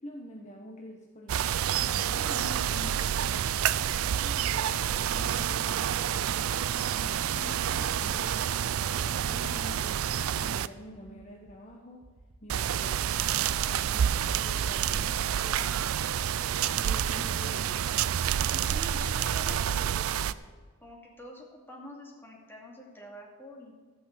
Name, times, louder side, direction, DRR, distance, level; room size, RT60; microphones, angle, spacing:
voice 1, 0.0-6.5 6.9-8.4 8.8-12.1 12.4-16.0 16.5-17.8 19.7-20.3, left 1 dB, 35° left, 0 dB, 1.1 m, -47 dB
sound 1, 1.3-10.7 12.5-20.3, right 9 dB, 90° right, 0.4 m, -28 dB
sound 2, 11.0-11.5 12.0-12.7 13.3-14.4, right 2 dB, 60° right, 1.1 m, -55 dB
voice 2, 18.5-19.8 20.1-20.4 20.8-23.7, left 1 dB, 10° left, -2 dB, 2.5 m, -46 dB
14.0 x 6.3 x 7.5 m, 1.5 s
head